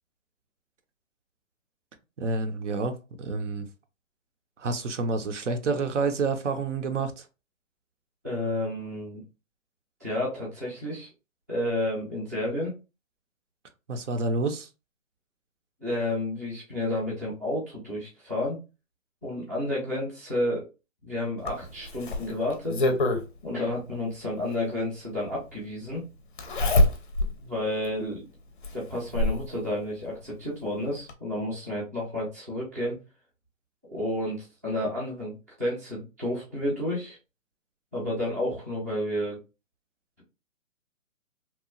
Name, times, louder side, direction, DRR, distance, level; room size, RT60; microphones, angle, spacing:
voice 1, 2.2-3.7 4.6-7.3 13.9-14.7, right 3 dB, 65° right, 0.6 m, -29 dB
voice 2, 8.2-9.2 10.0-11.1 11.5-12.7 15.8-18.6 19.2-20.7 21.0-22.8 23.4-26.0 27.4-28.3 28.7-33.0 33.8-37.2 37.9-39.4, left 1 dB, 15° right, 0.4 m, -31 dB
Zipper (clothing), 21.4-23.2 24.7-24.8 26.4-27.4 27.8-27.9 28.6-29.5 30.7-30.8 31.1-31.2, left 1 dB, 40° left, 0.5 m, -24 dB
2.9 x 2.2 x 2.4 m
hypercardioid pair, 155°, 41 cm